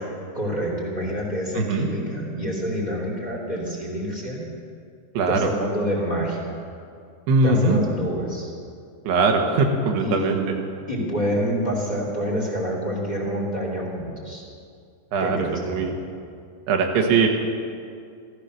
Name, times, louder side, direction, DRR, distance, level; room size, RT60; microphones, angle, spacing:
voice 1, 0.3-4.5 5.3-6.6 7.4-8.5 10.0-10.3 10.9-14.4 15.2-16.0, equal, 10° left, -3 dB, 2.6 m, -27 dB
voice 2, 1.6-1.9 5.2-5.5 7.3-7.8 9.1-10.4 15.1-15.4 15.6-15.9 16.7-17.3, right 3 dB, 80° right, 2 dB, 3.6 m, -20 dB
16.0 x 14.0 x 6.6 m, 2.3 s
omnidirectional pair, 4.8 m